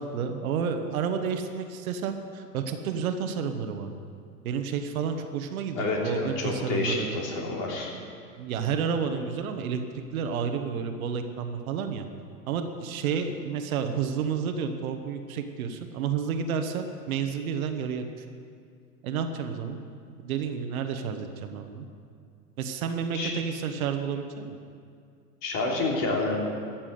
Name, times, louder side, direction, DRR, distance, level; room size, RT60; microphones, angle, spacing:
voice 1, 0.0-3.9 4.4-7.2 8.4-9.8 10.1-12.1 12.5-18.1 19.0-19.8 20.2-21.9 22.6-24.6, right 6 dB, 60° right, 6 dB, 1.4 m, -30 dB
voice 2, 5.7-7.9 23.1-23.3 25.4-26.4, left 2 dB, 45° left, -1 dB, 3.4 m, -28 dB
13.5 x 7.5 x 9.3 m, 2.3 s
hypercardioid pair, 100°, 46 cm